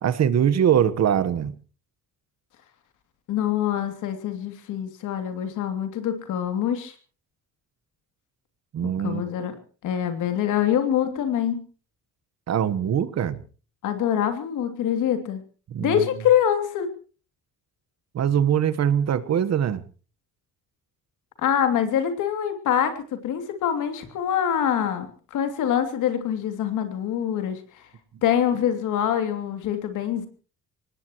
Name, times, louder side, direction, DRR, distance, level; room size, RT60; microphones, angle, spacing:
voice 1, 0.0-1.5 8.7-9.2 12.5-13.4 15.7-16.0 18.1-19.8, right 9 dB, 60° right, 15 dB, 1.3 m, -22 dB
voice 2, 3.3-6.9 8.8-9.5 9.8-11.6 13.8-15.4 15.8-16.9 21.4-27.6 28.2-30.3, left 9 dB, 85° left, 7 dB, 3.0 m, -25 dB
24.5 x 19.0 x 3.1 m, 0.37 s
cardioid pair, 90°, 30 cm